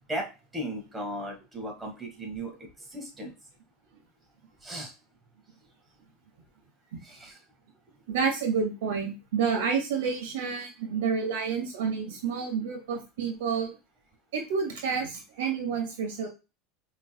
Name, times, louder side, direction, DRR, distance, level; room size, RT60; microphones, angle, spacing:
voice 1, 0.1-3.4 4.6-4.9 7.0-7.4, right 1 dB, 10° right, 1 dB, 1.6 m, -37 dB
voice 2, 8.1-13.7 14.3-16.3, right 6 dB, 90° right, 1 dB, 2.0 m, -29 dB
5.3 x 3.9 x 2.2 m, 0.29 s
supercardioid pair, 130°, 0 cm